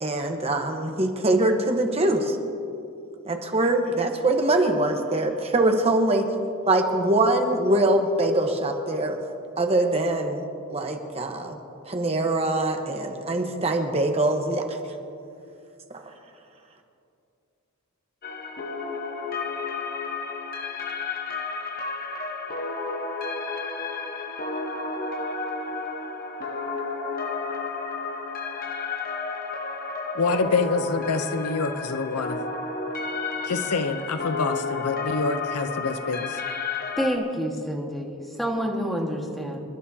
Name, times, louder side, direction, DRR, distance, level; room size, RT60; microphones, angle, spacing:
voice 1, 0.0-2.4 3.2-6.3 6.6-9.2 9.6-10.4 10.7-11.5 11.8-14.8 15.9-16.0, right 2 dB, 30° right, 4 dB, 1.1 m, -23 dB
sound 1, 18.2-37.2, left 4 dB, 40° left, 1.1 m, -31 dB
voice 2, 30.1-32.4 33.4-36.4, left 4 dB, 85° left, 9 dB, 0.7 m, -26 dB
voice 3, 37.0-38.1 38.4-39.6, equal, ahead, -1 dB, 1.6 m, -28 dB
28.0 x 12.0 x 2.8 m, 2.6 s
head